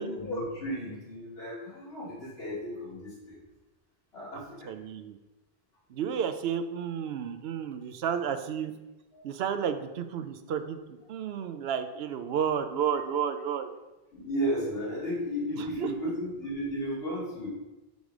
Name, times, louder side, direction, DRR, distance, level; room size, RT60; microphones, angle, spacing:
voice 1, 0.0-3.4 4.1-4.7 6.1-6.2 9.1-9.2 14.1-17.5, equal, 80° left, -7 dB, 2.7 m, -34 dB
voice 2, 4.7-5.2 5.9-8.7 9.2-13.7 15.6-16.1, right 8 dB, 80° right, 9 dB, 0.8 m, -32 dB
5.3 x 5.1 x 4.8 m, 1.1 s
omnidirectional pair, 1.0 m